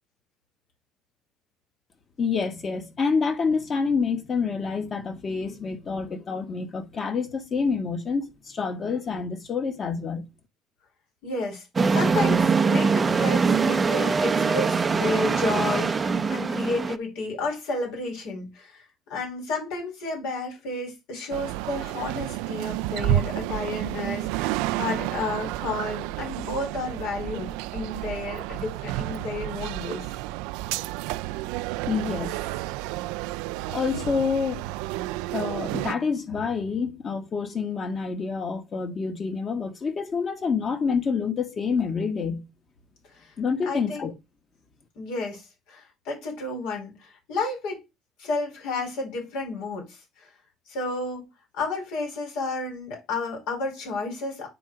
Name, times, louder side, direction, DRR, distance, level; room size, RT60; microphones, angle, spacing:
voice 1, 2.2-10.2 31.9-32.3 33.7-34.7 35.3-42.4 43.4-44.1, left 5 dB, 35° left, 1.5 m, -27 dB
voice 2, 11.2-11.7 11.9-18.8 19.1-30.1 43.0-43.3 43.7-44.1 44.9-47.8 48.2-50.3 50.7-51.3 51.6-54.5, left 3 dB, 75° left, 4.4 m, -32 dB
sound 1, 11.8-17.0, right 5 dB, 20° right, 0.5 m, -22 dB
sound 2, 21.3-36.0, right 18 dB, 90° right, 0.3 m, -32 dB
Wild animals, 22.6-31.1, right 10 dB, 70° right, 1.0 m, -34 dB
9.4 x 3.9 x 4.7 m
cardioid pair, 125°, 0 cm